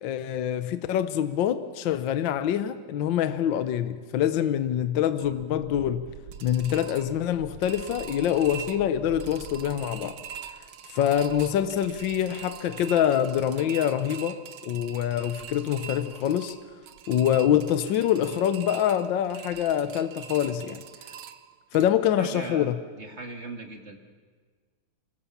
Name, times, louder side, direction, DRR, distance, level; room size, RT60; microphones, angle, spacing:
voice 1, 0.0-6.1 6.4-10.2 10.9-14.4 14.6-16.5 17.1-20.8 21.7-22.7, left 10 dB, 70° left, 1.5 m, -25 dB
Metal drain sticks, 5.2-21.9, right 9 dB, 90° right, 1.8 m, -43 dB
voice 2, 22.2-22.7 23.0-24.0, right 3 dB, 35° right, 2.1 m, -38 dB
25.0 x 20.5 x 7.2 m
omnidirectional pair, 2.2 m